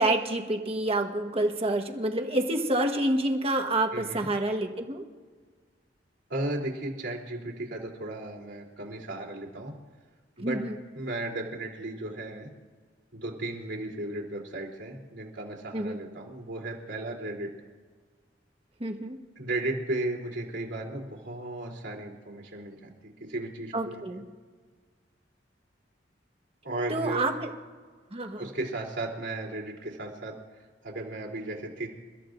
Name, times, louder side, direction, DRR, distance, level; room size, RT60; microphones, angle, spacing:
voice 1, 0.0-5.0 10.4-10.8 15.7-16.0 18.8-19.2 23.7-24.2 26.9-27.5 28.1-28.5, right 1 dB, 35° right, 4 dB, 1.4 m, -28 dB
voice 2, 3.9-4.3 6.3-9.7 10.4-10.6 10.9-12.5 13.1-17.5 19.4-24.0 26.6-27.2 28.4-30.3 30.8-31.9, right 2 dB, 70° right, -3 dB, 3.4 m, -35 dB
29.5 x 14.5 x 2.6 m, 1.5 s
head